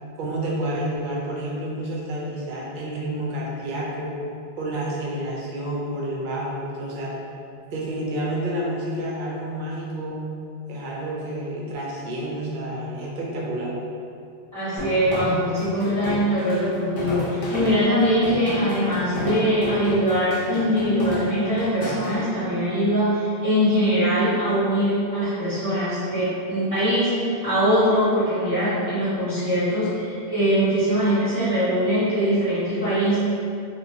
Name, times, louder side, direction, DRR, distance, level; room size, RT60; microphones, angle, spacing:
voice 1, 0.2-4.1 4.6-7.1 7.7-10.3 10.7-13.7, right 1 dB, 60° right, -4 dB, 0.6 m, -29 dB
voice 2, 14.5-33.2, equal, 20° right, -15 dB, 1.0 m, -22 dB
sound 1, 14.8-22.2, left 2 dB, 40° left, 0.6 m, -31 dB
2.4 x 2.2 x 2.8 m, 2.5 s
omnidirectional pair, 1.0 m